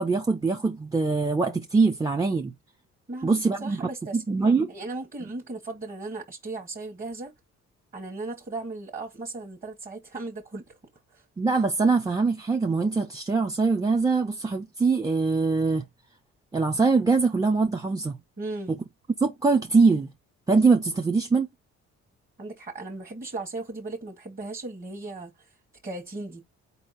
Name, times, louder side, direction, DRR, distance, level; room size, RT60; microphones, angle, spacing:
voice 1, 0.0-2.5 3.2-3.8 4.1-4.7 11.4-15.9 16.5-18.2 18.7-18.8 19.2-20.1 20.5-21.5, right 4 dB, 10° right, 0.6 m, -23 dB
voice 2, 3.1-4.4 4.7-7.3 7.9-10.8 11.1-11.2 18.4-18.7 22.4-25.5 25.8-26.4, right 2 dB, 30° right, 1.3 m, -37 dB
4.5 x 2.8 x 4.1 m
cardioid pair, 90°, 30 cm